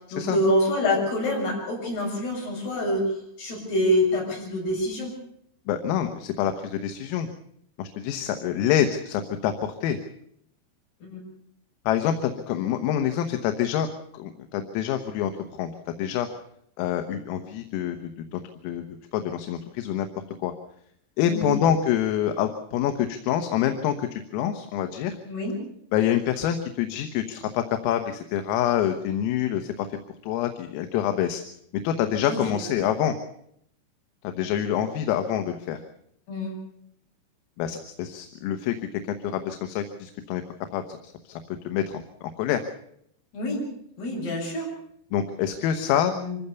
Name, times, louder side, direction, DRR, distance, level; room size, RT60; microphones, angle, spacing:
voice 1, 0.1-5.1 11.0-11.2 21.3-21.6 25.3-25.6 32.2-32.6 36.3-36.6 43.3-43.6 44.0-44.7 46.1-46.4, left 1 dB, 50° left, -2 dB, 9.1 m, -26 dB
voice 2, 5.7-7.3 7.8-10.0 11.9-13.9 14.1-15.3 15.6-16.3 16.8-20.1 20.4-20.5 21.2-25.2 25.9-29.9 30.2-31.4 31.8-33.2 34.2-35.8 37.6-40.4 40.7-41.3 41.7-42.6 45.1-46.1, left 10 dB, 85° left, 6 dB, 3.8 m, -26 dB
25.5 x 15.5 x 7.0 m, 0.71 s
omnidirectional pair, 5.9 m